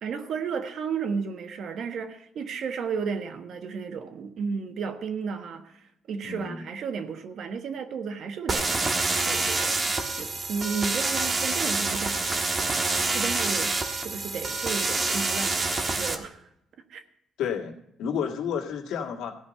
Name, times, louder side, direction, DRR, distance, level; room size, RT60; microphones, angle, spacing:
voice 1, 0.0-12.4 12.7-16.5 16.9-17.0, right 5 dB, 65° right, 1.3 m, -33 dB
voice 2, 6.2-6.6 17.4-17.7 18.0-19.3, left 7 dB, 85° left, 1.9 m, -30 dB
sound 1, 8.5-16.1, right 3 dB, 35° right, 1.4 m, -27 dB
15.5 x 5.3 x 8.6 m
cardioid pair, 90°, 0 cm